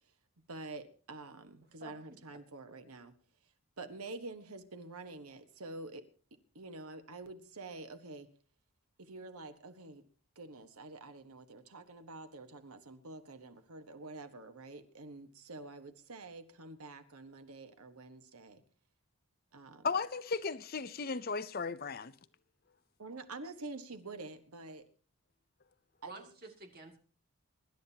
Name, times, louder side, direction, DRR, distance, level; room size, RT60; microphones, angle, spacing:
voice 1, 0.5-3.1 3.8-6.0 6.5-8.3 9.0-10.0 10.3-18.6 19.5-19.9 23.0-24.9 26.0-26.3, right 2 dB, 85° right, 1.4 m, -47 dB
voice 2, 1.8-2.2 26.0-27.0, right 2 dB, 45° right, 2.4 m, -51 dB
voice 3, 19.8-22.1, left 4 dB, 45° left, 0.6 m, -35 dB
24.0 x 12.0 x 2.9 m
head